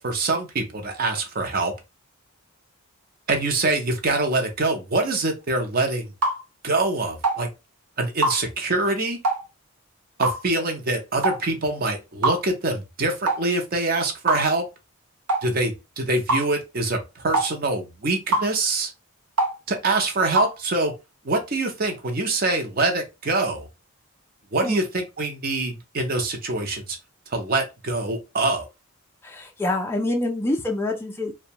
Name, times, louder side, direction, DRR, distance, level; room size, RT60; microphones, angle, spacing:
voice 1, 0.0-1.7 3.3-6.1 6.6-7.5 8.0-9.2 10.2-14.6 15.4-18.9 19.7-20.9 21.2-23.7 24.5-27.0 27.3-28.6, right 2 dB, 40° right, 0.6 m, -24 dB
sound 1, 6.2-6.4 7.2-7.4 8.2-8.4 9.2-9.4 10.2-10.4 11.2-11.4 12.2-12.4 13.3-13.4 14.3-14.5 15.3-15.5 16.3-16.5 17.3-17.5 18.3-18.5 19.4-19.6 20.4-20.5, right 2 dB, 90° right, 0.7 m, -22 dB
voice 2, 29.2-31.4, left 2 dB, 10° left, 0.3 m, -26 dB
2.6 x 2.1 x 2.8 m
head